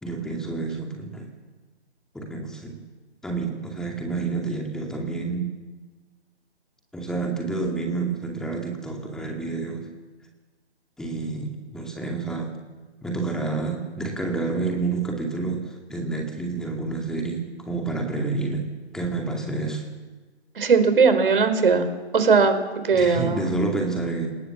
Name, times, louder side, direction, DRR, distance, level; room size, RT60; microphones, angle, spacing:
voice 1, 0.0-1.3 2.1-2.8 3.2-5.5 6.9-9.9 11.0-12.5 13.0-18.7 18.9-19.8 22.9-24.3, right 3 dB, ahead, 1 dB, 2.4 m, -29 dB
voice 2, 20.6-21.9 22.1-22.6 22.8-23.4, right 5 dB, 50° right, 9 dB, 4.5 m, -18 dB
29.5 x 19.5 x 7.4 m, 1.3 s
figure-of-eight pair, 150°, 34 cm